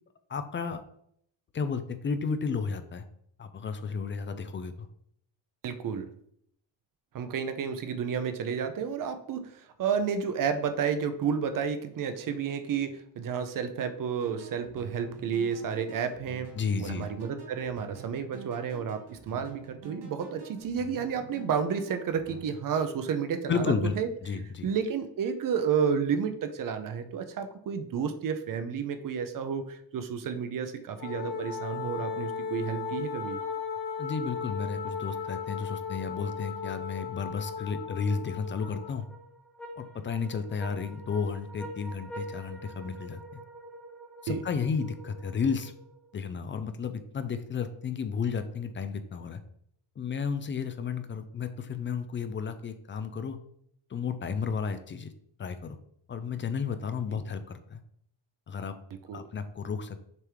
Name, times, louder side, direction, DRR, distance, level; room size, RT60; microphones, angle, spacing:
voice 1, 0.3-0.8 1.5-3.1 3.4-4.9 16.5-17.1 23.5-24.0 24.2-24.7 34.0-39.1 39.8-43.4 44.2-45.7 46.1-49.4 50.0-53.4 53.9-55.1 55.4-55.8 56.1-57.8 58.5-58.7 59.1-60.0, left 5 dB, 30° left, 10 dB, 0.3 m, -32 dB
voice 2, 5.6-6.1 7.1-16.5 16.8-24.1 24.6-33.4 44.3-44.4 58.9-59.2, right 7 dB, 45° right, 9 dB, 0.7 m, -31 dB
sound 1, 14.2-22.4, right 6 dB, 65° right, 2.7 m, -48 dB
Wind instrument woodwind instrument, 31.0-39.0, left 6 dB, 90° left, 1.3 m, -36 dB
sound 2, 38.6-46.1, right 1 dB, 5° left, 0.9 m, -46 dB
6.8 x 3.5 x 4.7 m, 0.69 s
cardioid pair, 170°, 46 cm